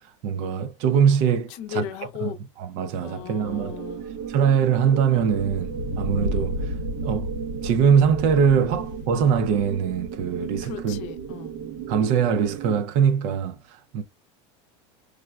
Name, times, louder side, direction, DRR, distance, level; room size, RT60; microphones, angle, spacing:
voice 1, 0.2-1.9 2.2-3.7 4.3-6.7 7.0-7.3 7.6-11.0 11.9-14.0, right 7 dB, 50° right, 0.5 m, -22 dB
voice 2, 1.6-2.4 3.0-4.1 10.6-11.6, left 10 dB, 50° left, 0.6 m, -36 dB
sound 1, 3.4-12.8, right 3 dB, 70° right, 1.0 m, -32 dB
4.7 x 2.2 x 2.2 m
supercardioid pair, 150°, 15 cm